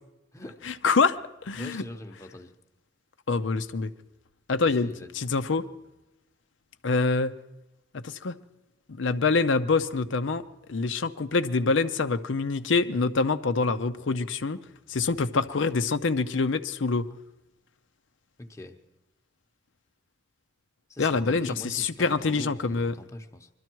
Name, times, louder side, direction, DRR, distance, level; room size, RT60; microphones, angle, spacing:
voice 1, 0.6-1.8 3.3-3.9 4.5-4.9 5.1-5.6 6.8-7.3 7.9-8.3 8.9-10.4 10.7-14.6 14.9-17.1 21.0-22.9, left 4 dB, 90° left, 0.6 m, -25 dB
voice 2, 1.5-2.5 4.6-5.2 18.4-18.8 20.9-23.5, left 1 dB, 15° left, 1.0 m, -42 dB
22.0 x 13.0 x 4.6 m
head